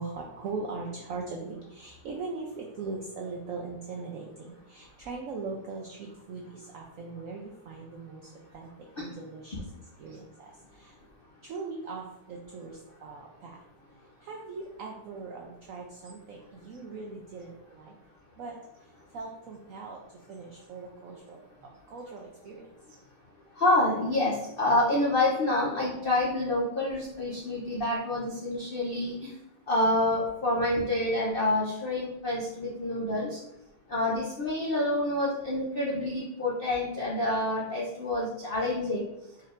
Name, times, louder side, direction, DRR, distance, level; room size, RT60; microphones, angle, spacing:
voice 1, 0.0-8.7 9.0-9.7 10.0-11.0 11.4-13.6 14.0-18.0 18.4-18.6 19.1-21.4 21.9-22.7, right 4 dB, 85° right, 0 dB, 0.7 m, -40 dB
voice 2, 23.6-29.3 29.7-33.4 33.9-39.0, left 1 dB, 85° left, -5 dB, 0.5 m, -27 dB
4.4 x 4.3 x 2.5 m, 0.88 s
omnidirectional pair, 2.0 m